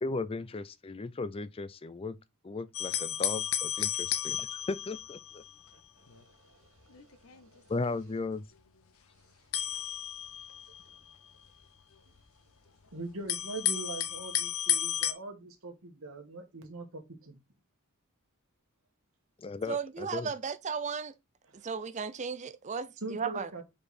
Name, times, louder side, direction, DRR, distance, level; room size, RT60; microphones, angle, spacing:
voice 1, 0.0-2.2 2.4-5.4 7.7-8.4 19.4-20.3, left 3 dB, 25° left, 0.4 m, -36 dB
sound 1, 2.7-5.7 6.1-6.2 6.9-7.9 9.5-11.5 12.2-12.3 13.3-15.1, left 10 dB, 75° left, 0.8 m, -33 dB
voice 2, 6.1-7.7 12.9-17.4 21.6-21.7 23.0-23.6, right 3 dB, 65° right, 1.7 m, -43 dB
voice 3, 19.7-21.1 21.6-23.5, right 6 dB, 35° right, 0.5 m, -35 dB
5.1 x 4.8 x 4.2 m
head